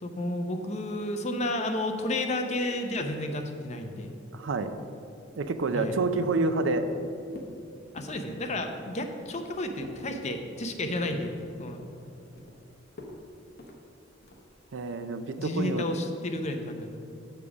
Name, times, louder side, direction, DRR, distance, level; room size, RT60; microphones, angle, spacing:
voice 1, 0.0-4.1 5.7-5.9 7.9-11.8 15.4-16.9, left 1 dB, 35° left, 5 dB, 0.7 m, -32 dB
voice 2, 4.3-4.7 5.4-6.9 14.7-15.9, right 3 dB, 75° right, 10 dB, 0.5 m, -28 dB
sound 1, 5.4-5.8 6.1-6.3 6.7-7.0 7.3-7.6 7.9-8.2 8.6-8.8 9.2-10.0 10.4-10.8 11.1-11.3 11.7-12.6 13.0-13.2 13.6-13.8 14.2-14.5, left 1 dB, 55° left, 1.0 m, -45 dB
6.8 x 5.0 x 7.0 m, 2.5 s
head